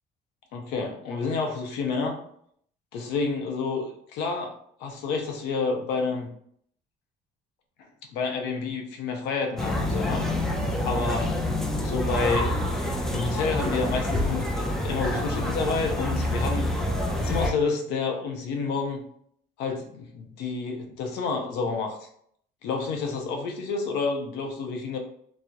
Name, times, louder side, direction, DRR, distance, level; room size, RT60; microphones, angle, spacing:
voice 1, 0.5-2.2 2.9-6.3 8.1-10.2 10.8-11.3 11.8-12.5 13.1-16.9 17.2-19.0 19.6-22.1 22.6-25.0, left 4 dB, 90° left, 3 dB, 0.5 m, -29 dB
sound 1, 9.6-17.5, left 1 dB, ahead, 0.3 m, -27 dB
2.3 x 2.0 x 2.7 m, 0.67 s
cardioid pair, 110°, 17 cm